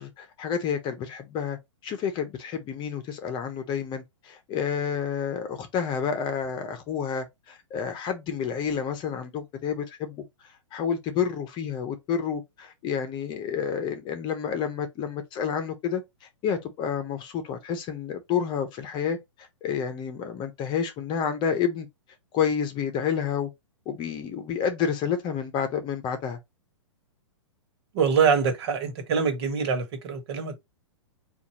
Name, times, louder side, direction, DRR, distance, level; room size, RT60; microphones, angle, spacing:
voice 1, 0.0-1.6 1.8-10.2 10.7-16.0 16.4-21.9 22.3-23.5 23.9-26.4, left 7 dB, 30° left, 1.0 m, -29 dB
voice 2, 27.9-30.6, right 6 dB, 55° right, 1.5 m, -24 dB
4.3 x 2.6 x 4.2 m
hypercardioid pair, 125°, 16 cm